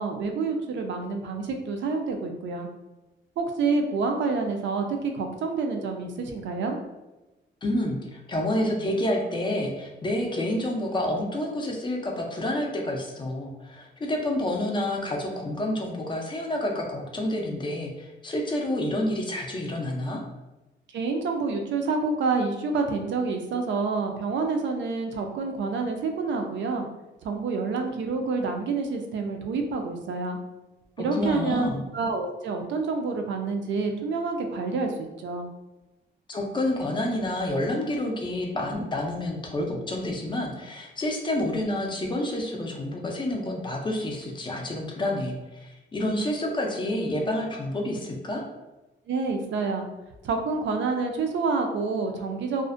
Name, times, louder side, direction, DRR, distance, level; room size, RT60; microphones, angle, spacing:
voice 1, 0.0-2.7 3.4-6.8 20.9-26.8 27.2-30.4 31.0-35.5 49.1-49.9 50.2-52.6, right 4 dB, 75° right, 4 dB, 0.4 m, -28 dB
voice 2, 7.6-20.2 31.0-31.8 36.3-48.4, left 1 dB, 25° left, 0 dB, 0.4 m, -29 dB
2.4 x 2.0 x 2.4 m, 1.0 s
wide cardioid pair, 145°, 20 cm